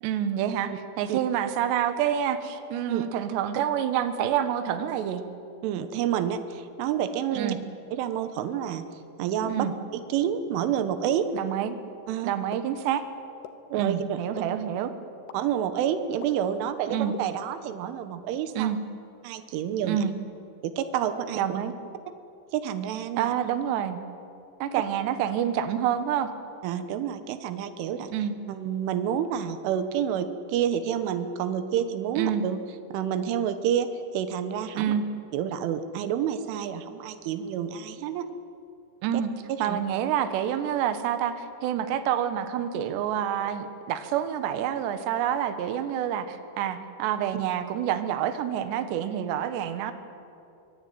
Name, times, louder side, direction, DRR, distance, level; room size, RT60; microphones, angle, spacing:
voice 1, 0.0-5.2 7.3-7.6 9.4-9.7 11.3-11.8 12.2-13.0 13.8-14.9 16.9-17.1 18.6-18.8 19.8-20.1 21.4-21.7 23.2-24.0 24.6-26.3 28.1-28.3 32.2-32.4 34.8-35.0 39.0-39.3 39.6-49.9, right 10 dB, 70° right, 9 dB, 3.3 m, -27 dB
voice 2, 5.6-7.6 7.9-8.9 9.2-11.3 12.1-12.3 13.7-14.2 15.3-18.7 19.2-20.0 20.6-21.6 22.5-23.3 26.6-28.1 28.5-32.6 32.9-33.9 34.1-34.9 35.3-38.3 39.1-39.2 39.5-39.8, right 9 dB, 90° right, 10 dB, 3.7 m, -29 dB
sound 1, 12.5-12.6 13.4-13.5 14.4-14.5 15.3-15.4 16.2-16.3 17.1-17.2, left 12 dB, 80° left, 3.6 m, -39 dB
24.5 x 23.0 x 9.2 m, 2.6 s
omnidirectional pair, 5.5 m